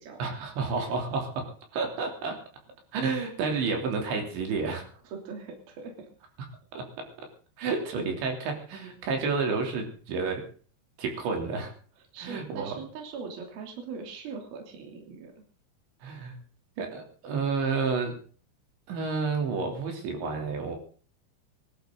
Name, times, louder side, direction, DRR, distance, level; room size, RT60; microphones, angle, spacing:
voice 1, 0.2-1.5 1.7-2.4 2.9-4.9 6.7-6.8 7.6-10.4 11.0-11.7 12.2-12.8 16.0-16.3 16.8-18.2 18.9-20.8, right 4 dB, 75° right, 3 dB, 5.5 m, -30 dB
voice 2, 5.0-6.1 7.7-8.2 12.1-15.4, right 5 dB, 55° right, 3 dB, 4.6 m, -41 dB
23.0 x 12.5 x 3.9 m, 0.42 s
omnidirectional pair, 5.3 m